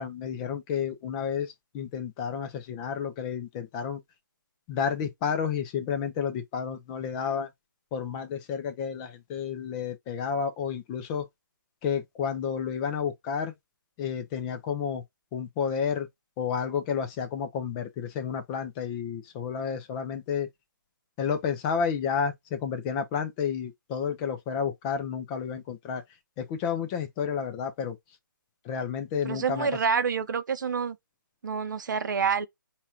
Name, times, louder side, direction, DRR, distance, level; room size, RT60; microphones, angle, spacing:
voice 1, 0.0-4.0 4.7-7.5 7.9-11.3 11.8-13.5 14.0-15.0 15.3-16.1 16.4-20.5 21.2-26.0 26.4-28.0 28.6-29.7, left 7 dB, 20° left, 0.6 m, -31 dB
voice 2, 29.2-31.0 31.4-32.5, right 6 dB, 60° right, 0.8 m, -27 dB
4.1 x 2.5 x 4.3 m
hypercardioid pair, 155°, 12 cm